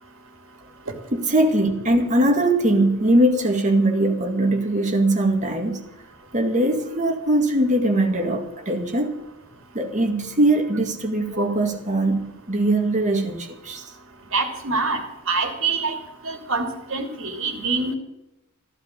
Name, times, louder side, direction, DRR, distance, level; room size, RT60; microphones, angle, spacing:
voice 1, 1.1-5.9 6.3-9.2 9.7-13.8, right 1 dB, 35° right, 2.0 m, -21 dB
voice 2, 14.3-15.0 15.3-16.0 16.2-17.9, right 3 dB, 60° right, 2.8 m, -25 dB
14.0 x 12.5 x 6.7 m
head